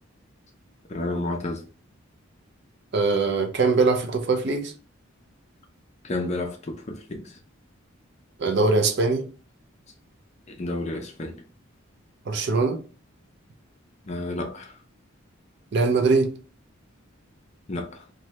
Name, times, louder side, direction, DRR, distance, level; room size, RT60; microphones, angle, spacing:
voice 1, 0.9-1.6 6.0-7.3 10.5-11.3 14.1-14.7 17.7-18.0, left 2 dB, 30° left, 0.5 m, -31 dB
voice 2, 2.9-4.7 8.4-9.2 12.3-12.8 15.7-16.3, right 3 dB, 55° right, 0.5 m, -22 dB
3.1 x 2.2 x 2.8 m
head